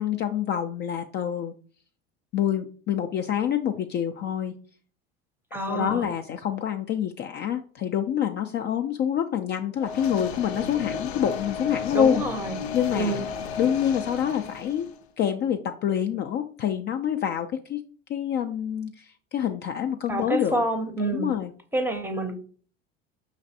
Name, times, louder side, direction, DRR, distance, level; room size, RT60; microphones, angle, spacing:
voice 1, 0.0-1.5 2.3-4.5 5.7-12.2 12.7-13.2 13.6-14.9 15.2-17.8 18.1-20.6 21.0-21.5, left 9 dB, 35° left, 6 dB, 0.4 m, -27 dB
voice 2, 5.5-6.1 11.9-12.6 12.9-13.2 20.1-21.3 21.7-22.3, right 2 dB, 5° right, 7 dB, 0.7 m, -27 dB
sound 1, 9.8-15.0, left 6 dB, 85° left, 0.5 m, -34 dB
5.1 x 3.2 x 2.7 m, 0.43 s
hypercardioid pair, 80°, 31 cm